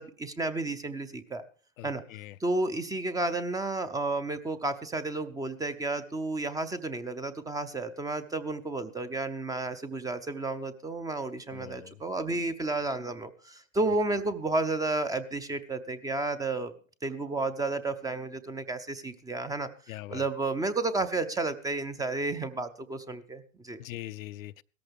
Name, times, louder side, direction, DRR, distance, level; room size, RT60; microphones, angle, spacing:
voice 1, 0.0-1.4 1.8-2.0 2.4-16.7 17.0-19.7 20.1-23.8, right 2 dB, 10° right, 0.5 m, -32 dB
voice 2, 1.8-2.4 11.5-12.0 19.9-20.3 23.8-24.6, left 16 dB, 75° left, 0.6 m, -42 dB
17.0 x 14.0 x 3.5 m
hypercardioid pair, 120°, 41 cm